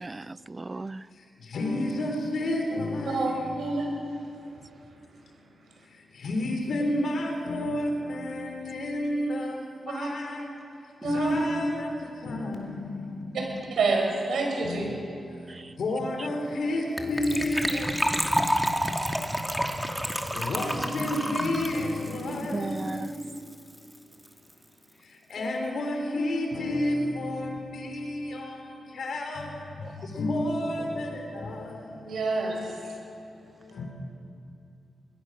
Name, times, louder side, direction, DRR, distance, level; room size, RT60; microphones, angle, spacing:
voice 1, 0.0-1.0 15.5-15.6 22.5-23.1, right 3 dB, 35° right, 0.5 m, -35 dB
voice 2, 1.1-3.8 6.1-10.6 11.0-13.5 14.6-18.8 20.3-23.5 25.0-32.3 33.6-33.9, left 1 dB, 75° left, 3.8 m, -31 dB
voice 3, 3.0-3.9 9.9-10.1 11.0-11.3 13.3-13.4 13.7-14.8 22.3-22.4 32.0-32.7, right 3 dB, 80° right, 5.8 m, -27 dB
Gurgling / Trickle dribble / Fill (with liquid), 17.0-23.2 23.5-23.6 23.7-24.0 24.3-24.4, equal, ahead, 2.6 m, -29 dB
22.5 x 19.5 x 6.5 m
supercardioid pair, 50°, 0 cm